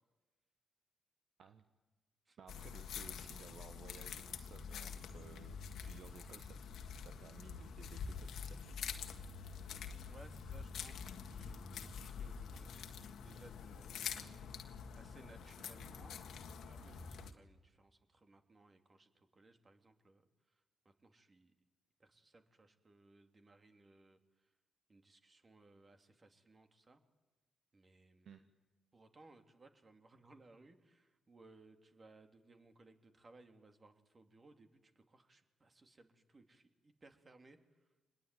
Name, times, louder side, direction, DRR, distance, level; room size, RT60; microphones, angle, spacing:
voice 1, 2.4-6.6 7.0-9.4 28.2-28.4, right 7 dB, 60° right, 8 dB, 1.2 m, -58 dB
sound 1, 2.5-17.3, left 6 dB, 65° left, 1.7 m, -47 dB
voice 2, 10.1-14.0 14.9-16.3 16.6-20.2 20.8-21.5 22.0-24.2 24.9-27.0 27.7-28.3 28.9-37.6, right 2 dB, 35° right, 6 dB, 2.9 m, -63 dB
25.0 x 20.5 x 9.3 m, 1.1 s
hypercardioid pair, 45°, 0 cm